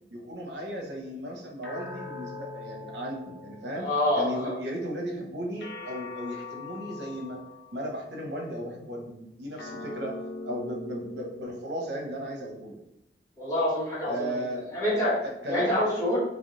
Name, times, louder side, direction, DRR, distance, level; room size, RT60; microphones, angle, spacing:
voice 1, 0.1-3.9 4.1-7.4 7.7-10.1 10.4-12.8 14.1-14.7 15.2-15.9, equal, 80° right, 0 dB, 0.9 m, -35 dB
sound 1, 1.6-4.2 5.6-8.1 9.6-12.2, left 3 dB, 90° left, 0.8 m, -42 dB
voice 2, 3.7-4.5 13.4-14.4 14.7-15.1 15.5-16.2, left 1 dB, 20° left, -9 dB, 1.6 m, -26 dB
3.8 x 2.9 x 3.9 m, 0.83 s
head